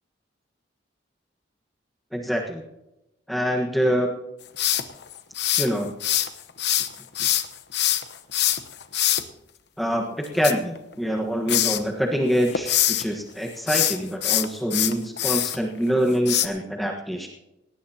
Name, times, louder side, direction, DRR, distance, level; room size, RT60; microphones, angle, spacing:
voice 1, 2.1-2.6 3.3-4.1 5.6-5.9 9.8-10.0 10.3-17.3, equal, ahead, 0 dB, 1.4 m, -25 dB
sound 1, 4.6-6.3 6.6-9.2 10.2-11.2 11.5-11.8 12.3-13.0 13.6-15.6 16.3-16.5, left 12 dB, 65° left, 1.0 m, -23 dB
19.0 x 18.0 x 2.9 m, 0.91 s
head